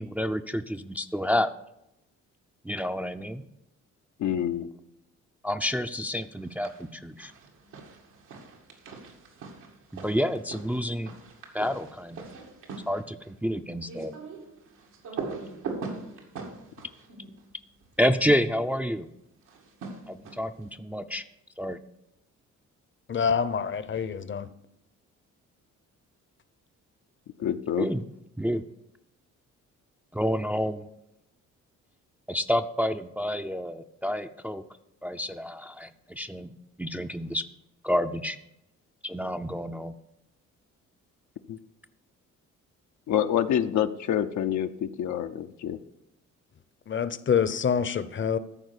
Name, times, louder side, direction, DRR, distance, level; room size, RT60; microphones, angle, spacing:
voice 1, 0.0-1.5 2.6-3.5 5.4-7.3 9.9-11.2 11.5-12.3 12.9-14.1 18.0-19.1 20.1-21.2 21.6-21.8 27.8-28.0 28.4-28.6 30.1-30.9 32.3-34.6 35.0-36.5 36.8-37.4 37.8-38.4 39.0-40.0, equal, 5° right, 0.5 m, -29 dB
voice 2, 4.2-4.7 27.4-27.9 41.5-41.6 43.1-45.8, left 10 dB, 70° left, 0.8 m, -27 dB
sound 1, 6.3-6.9 7.2-18.2 19.4-20.6, right 4 dB, 90° right, 2.2 m, -41 dB
voice 3, 23.1-24.5 46.9-48.4, left 7 dB, 40° left, 0.8 m, -26 dB
14.0 x 4.7 x 8.2 m
cardioid pair, 90°, 30 cm